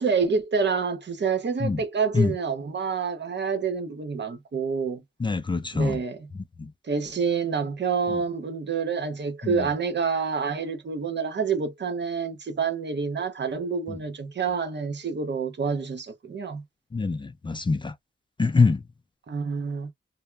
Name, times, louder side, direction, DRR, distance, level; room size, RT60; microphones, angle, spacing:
voice 1, 0.0-5.0 5.7-6.3 6.8-16.6 19.3-19.9, right 5 dB, 60° right, 0.8 m, -28 dB
voice 2, 5.2-6.0 6.6-6.7 9.4-9.7 16.9-17.9 18.4-18.8, left 4 dB, 25° left, 0.3 m, -24 dB
2.1 x 2.0 x 3.2 m
wide cardioid pair, 90°, 21 cm